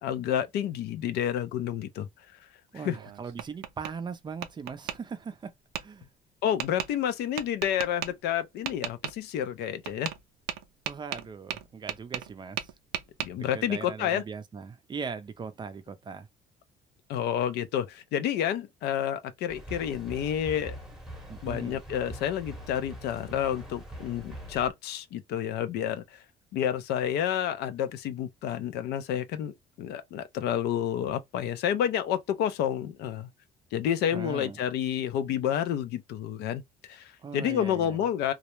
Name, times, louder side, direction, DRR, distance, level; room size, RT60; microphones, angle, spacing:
voice 1, 0.0-2.1 2.8-3.0 6.4-10.1 13.2-14.2 17.1-20.8 21.4-26.2 26.5-33.3 33.7-38.3, left 10 dB, 80° left, 0.4 m, -29 dB
voice 2, 2.7-5.5 5.8-6.1 10.9-12.7 13.4-16.3 21.3-21.8 34.1-34.6 37.2-38.0, right 5 dB, 25° right, 0.4 m, -39 dB
Tap, 2.9-3.9 4.4-5.0 5.7-5.8 6.6-6.9 7.4-8.1 8.7-9.1 9.9-10.2 10.5-12.3 12.6-13.3, right 11 dB, 85° right, 0.4 m, -34 dB
sound 1, 19.5-24.7, equal, 5° right, 0.8 m, -43 dB
2.3 x 2.0 x 2.9 m
cardioid pair, 110°, 17 cm